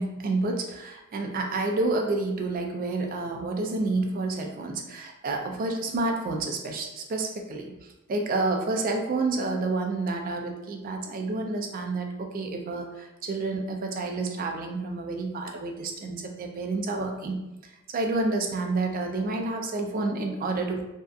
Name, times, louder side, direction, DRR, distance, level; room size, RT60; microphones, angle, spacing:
voice 1, 0.0-7.7 8.1-17.4 17.9-20.8, right 3 dB, 40° right, 3 dB, 0.3 m, -29 dB
2.6 x 2.3 x 2.2 m, 0.95 s
head